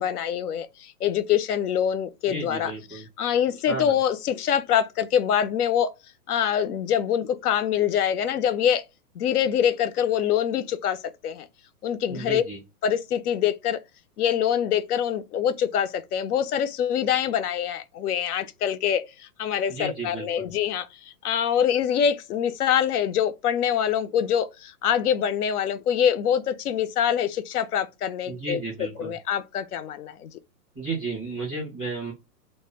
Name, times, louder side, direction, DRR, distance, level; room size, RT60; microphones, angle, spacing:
voice 1, 0.0-5.9 6.3-8.8 9.2-11.5 11.8-12.4 12.8-13.8 14.2-30.3, left 9 dB, 70° left, 0.5 m, -25 dB
voice 2, 2.3-3.1 3.7-3.9 12.1-12.6 19.7-20.5 28.3-29.1 30.7-32.1, right 3 dB, 10° right, 0.5 m, -33 dB
2.1 x 2.1 x 3.2 m
hypercardioid pair, 170°, 46 cm